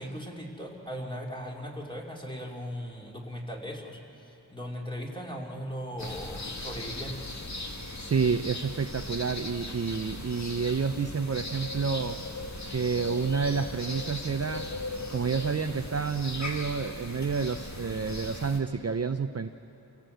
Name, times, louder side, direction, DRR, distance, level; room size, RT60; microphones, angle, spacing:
voice 1, 0.0-7.4, equal, 15° left, -1 dB, 2.8 m, -38 dB
sound 1, 6.0-18.6, left 2 dB, 45° left, 1.9 m, -38 dB
voice 2, 8.0-12.2 12.7-14.7 15.1-19.5, right 5 dB, 40° right, 8 dB, 0.6 m, -29 dB
27.5 x 17.0 x 7.9 m, 2.8 s
wide cardioid pair, 65°, 38 cm